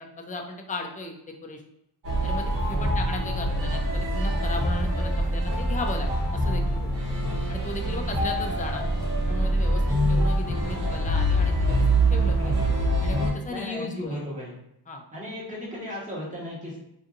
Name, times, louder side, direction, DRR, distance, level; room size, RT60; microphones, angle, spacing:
voice 1, 0.0-1.6 2.2-6.9 7.5-8.9 9.3-9.8 10.1-11.8 12.1-12.5 13.0-14.2 14.9-15.0, left 2 dB, 20° left, 2 dB, 0.4 m, -36 dB
sound 1, 2.0-13.3, right 1 dB, 70° right, 1.3 m, -24 dB
voice 2, 12.2-12.8 13.5-14.5 15.1-16.8, left 1 dB, 15° right, -6 dB, 1.3 m, -36 dB
3.8 x 2.6 x 2.6 m, 0.79 s
wide cardioid pair, 95°, 44 cm